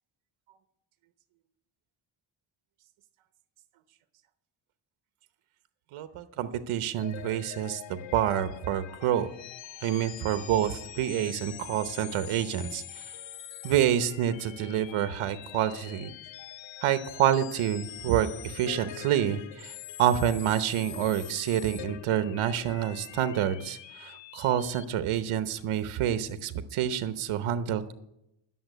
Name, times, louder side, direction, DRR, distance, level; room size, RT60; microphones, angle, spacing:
voice 1, 5.9-9.3 9.8-13.0 13.6-16.1 16.8-27.9, right 10 dB, 80° right, 11 dB, 0.9 m, -28 dB
sound 1, 7.0-24.8, left 12 dB, 65° left, 0.8 m, -44 dB
10.5 x 7.2 x 9.0 m, 0.83 s
cardioid pair, 85°, 49 cm